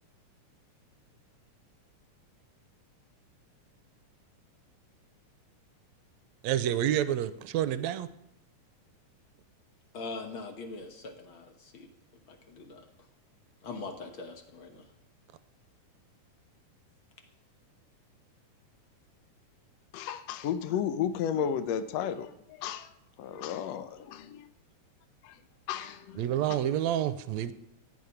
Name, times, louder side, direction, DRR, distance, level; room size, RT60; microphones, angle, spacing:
voice 1, 6.4-8.1 26.2-27.5, right 11 dB, 80° right, 13 dB, 1.7 m, -28 dB
voice 2, 9.9-11.9 12.3-12.8 13.6-14.8, left 3 dB, 55° left, 5 dB, 1.5 m, -42 dB
voice 3, 19.9-24.5 25.2-25.4 25.7-26.6, left 8 dB, 75° left, 10 dB, 1.6 m, -34 dB
16.0 x 5.5 x 9.6 m, 0.80 s
omnidirectional pair, 3.7 m